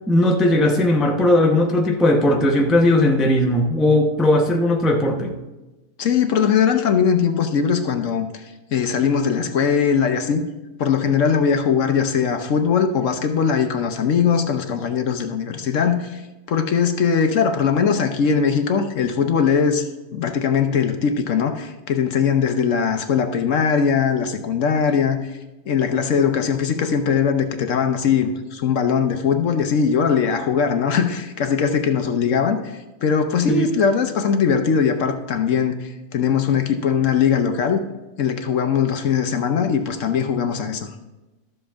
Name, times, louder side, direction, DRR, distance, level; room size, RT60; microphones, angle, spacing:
voice 1, 0.1-5.4 33.5-33.7, left 1 dB, ahead, 2 dB, 0.5 m, -17 dB
voice 2, 6.0-8.4 8.7-10.4 10.8-16.2 16.5-19.9 20.1-25.2 25.7-32.6 33.0-37.8 38.2-40.9, left 6 dB, 60° left, 7 dB, 1.0 m, -20 dB
13.0 x 7.5 x 3.5 m, 1.1 s
omnidirectional pair, 1.6 m